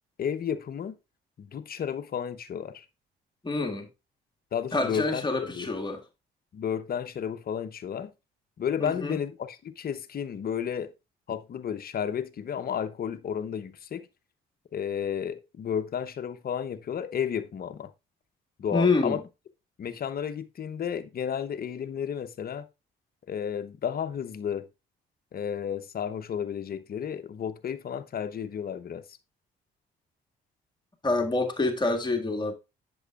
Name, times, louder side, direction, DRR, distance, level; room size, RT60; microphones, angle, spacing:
voice 1, 0.2-1.0 1.4-2.9 4.5-5.7 6.5-8.1 8.6-10.9 11.3-14.1 14.7-17.9 18.6-19.2 19.8-22.7 23.3-24.7 25.3-29.0, left 8 dB, 50° left, 0.8 m, -32 dB
voice 2, 3.4-3.9 4.7-6.0 8.8-9.2 18.7-19.2 31.0-32.5, left 3 dB, 20° left, 1.9 m, -27 dB
8.0 x 7.0 x 2.4 m
supercardioid pair, 60°, 20 cm